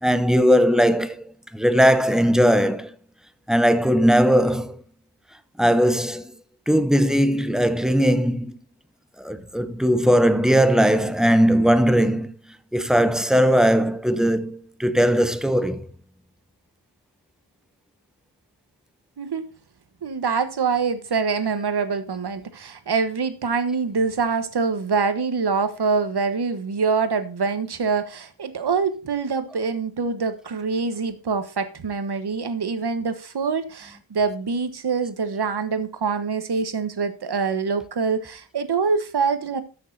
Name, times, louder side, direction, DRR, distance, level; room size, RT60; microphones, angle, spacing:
voice 1, 0.0-1.2 1.5-2.9 3.5-4.8 5.6-6.3 6.7-8.6 9.2-12.4 12.7-15.9, equal, ahead, 0.7 m, -19 dB
voice 2, 20.0-39.6, right 5 dB, 70° right, 1.3 m, -25 dB
13.5 x 6.6 x 2.7 m
wide cardioid pair, 115°, 41 cm